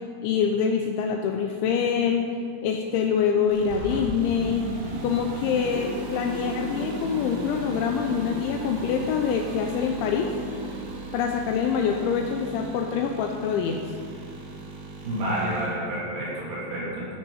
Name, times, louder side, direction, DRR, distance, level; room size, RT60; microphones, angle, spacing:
voice 1, 0.2-2.2 2.6-4.6 5.0-10.3 11.1-13.8, left 7 dB, 80° left, 3 dB, 2.7 m, -25 dB
sound 1, 3.5-15.7, right 1 dB, 70° right, 4.6 m, -35 dB
sound 2, 3.7-4.1, left 2 dB, 30° left, 2.6 m, -35 dB
voice 2, 15.0-17.1, right 1 dB, 50° right, -7 dB, 4.1 m, -29 dB
12.5 x 9.5 x 5.6 m, 2.2 s
omnidirectional pair, 5.9 m